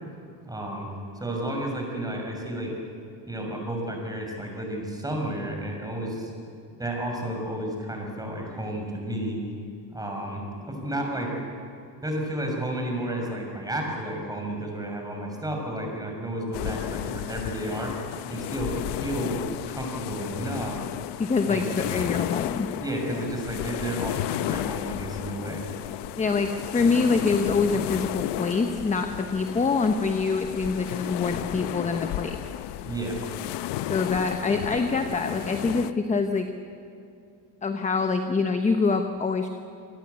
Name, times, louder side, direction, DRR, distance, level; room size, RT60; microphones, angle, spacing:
voice 1, 0.4-0.9 1.2-2.7 3.2-6.3 6.8-9.4 9.9-11.3 12.0-17.9 18.3-18.7 19.0-20.8 21.5-21.7 22.8-25.7 32.8-33.2, right 1 dB, 10° right, 1 dB, 6.2 m, -32 dB
sound 1, 16.5-35.9, left 14 dB, 75° left, 1.0 m, -33 dB
voice 2, 21.2-22.7 26.2-32.4 33.9-36.5 37.6-39.5, left 4 dB, 15° left, 7 dB, 1.1 m, -25 dB
27.0 x 19.5 x 8.3 m, 2.6 s
cardioid pair, 130°, 41 cm